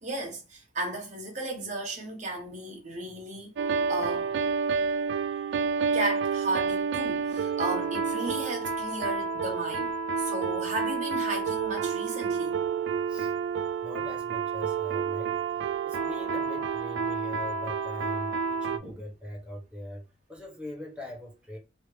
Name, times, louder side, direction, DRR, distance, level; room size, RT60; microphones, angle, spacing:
voice 1, 0.0-3.5 3.9-4.3 5.9-12.5 18.8-19.0, right 2 dB, 40° right, 1.1 m, -34 dB
sound 1, 3.6-18.8, right 5 dB, 80° right, 0.3 m, -29 dB
voice 2, 13.8-21.6, left 1 dB, 5° right, 1.0 m, -42 dB
3.1 x 2.8 x 3.2 m
head